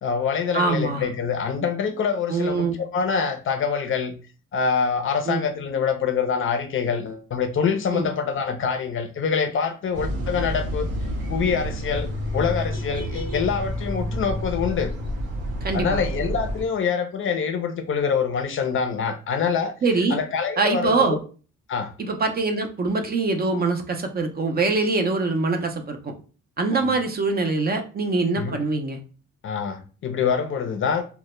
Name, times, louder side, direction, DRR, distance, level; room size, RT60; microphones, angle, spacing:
voice 1, 0.0-4.2 4.5-10.9 11.3-14.9 15.7-19.7 20.1-21.2 21.7-21.9 26.7-27.0 28.4-28.6 29.4-31.0, left 6 dB, 45° left, 7 dB, 0.4 m, -25 dB
voice 2, 0.5-1.1 2.3-2.8 5.3-5.4 7.9-8.1 15.6-16.0 19.8-20.2 20.6-21.2 22.0-26.1 26.6-29.0, right 3 dB, 30° right, 5 dB, 0.4 m, -23 dB
sound 1, 9.9-16.6, equal, 85° right, 1.0 m, -29 dB
2.1 x 2.1 x 2.9 m, 0.37 s
cardioid pair, 90°, 30 cm